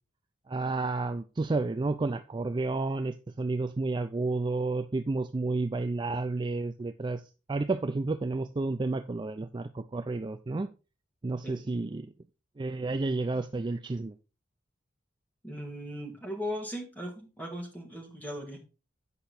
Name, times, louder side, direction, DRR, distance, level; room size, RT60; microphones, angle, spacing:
voice 1, 0.5-7.2 7.5-10.7 11.2-12.1 12.6-14.1, right 3 dB, 25° right, 0.3 m, -31 dB
voice 2, 11.4-11.8 15.4-18.7, equal, 10° left, 2.0 m, -38 dB
8.3 x 5.7 x 4.1 m
head